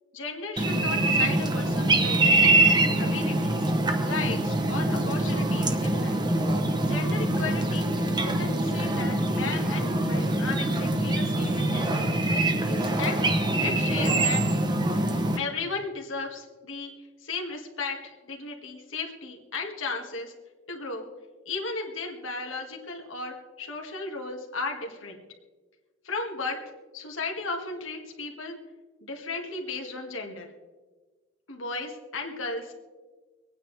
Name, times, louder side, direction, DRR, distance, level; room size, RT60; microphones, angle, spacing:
voice 1, 0.1-2.4 3.0-3.6 4.0-6.2 6.8-7.9 8.2-12.2 12.7-13.2 13.6-14.4 15.3-16.9 17.2-20.3 20.7-21.0 21.5-25.2 26.0-26.6 26.9-28.6 29.0-30.5 31.5-32.8, left 3 dB, 85° left, 2 dB, 1.9 m, -35 dB
sound 1, 0.6-15.4, right 2 dB, 20° right, 0.9 m, -24 dB
25.0 x 9.4 x 3.4 m, 1.3 s
head